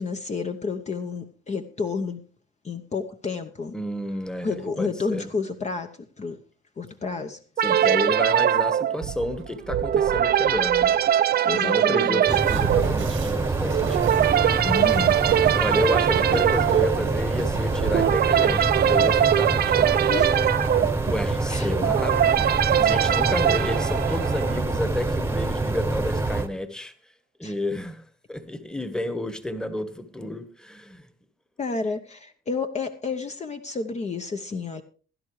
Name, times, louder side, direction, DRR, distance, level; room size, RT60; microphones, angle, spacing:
voice 1, 0.0-2.2 2.6-3.8 4.4-5.9 6.2-6.4 6.8-7.4 11.4-12.4 14.6-15.2 20.1-20.5 21.5-21.7 27.4-27.5 31.6-34.8, left 4 dB, 35° left, 0.8 m, -30 dB
voice 2, 3.7-5.3 7.6-10.9 11.5-14.2 15.6-20.0 21.1-26.9 27.4-28.0 28.3-31.0, left 1 dB, 5° left, 1.2 m, -30 dB
sound 1, 7.6-24.8, right 10 dB, 55° right, 0.5 m, -22 dB
Train, 9.0-19.4, right 8 dB, 80° right, 1.3 m, -35 dB
sound 2, 12.3-26.5, right 2 dB, 10° right, 1.0 m, -26 dB
16.0 x 11.5 x 3.2 m
cardioid pair, 90°, 20 cm